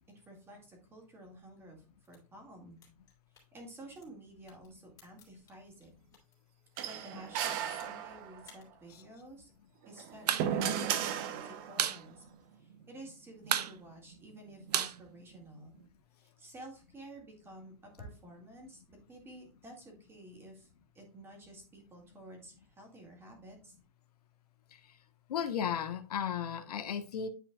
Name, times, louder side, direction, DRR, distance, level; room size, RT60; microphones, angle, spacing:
voice 1, 0.3-2.8 3.5-5.9 6.8-9.5 9.9-12.2 12.5-15.7 16.2-20.7 20.9-23.8, right 1 dB, 10° right, 1 dB, 2.1 m, -52 dB
sound 1, 1.9-6.3 6.7-8.1 8.4-8.7, left 6 dB, 20° left, 2.8 m, -62 dB
sound 2, 6.8-8.5 9.9-11.9, right 9 dB, 35° right, 0.7 m, -35 dB
sound 3, 10.1-10.5 10.8-10.9 11.2-12.0 12.3-12.4 12.7-13.1 13.4-15.8, right 9 dB, 80° right, 0.8 m, -33 dB
voice 2, 25.3-27.3, left 8 dB, 75° left, 8 dB, 1.2 m, -35 dB
9.7 x 5.0 x 2.3 m, 0.36 s
hypercardioid pair, 155°, 20 cm